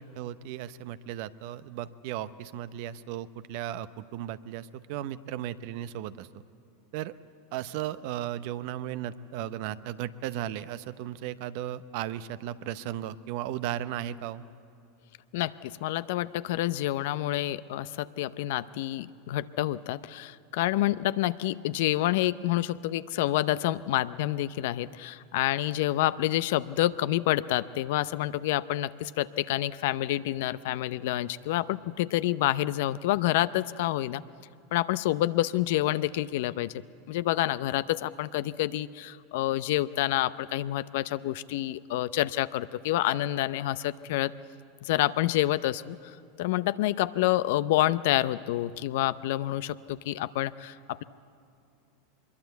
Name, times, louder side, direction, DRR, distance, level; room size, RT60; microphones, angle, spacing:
voice 1, 0.0-6.4 6.9-7.1 7.5-14.4, right 12 dB, 60° right, 14 dB, 0.8 m, -36 dB
voice 2, 15.3-34.2 34.7-36.7 37.1-44.3 44.8-46.0 46.4-51.0, left 15 dB, 65° left, 15 dB, 0.6 m, -28 dB
24.0 x 22.0 x 8.2 m, 2.4 s
hypercardioid pair, 95°, 0 cm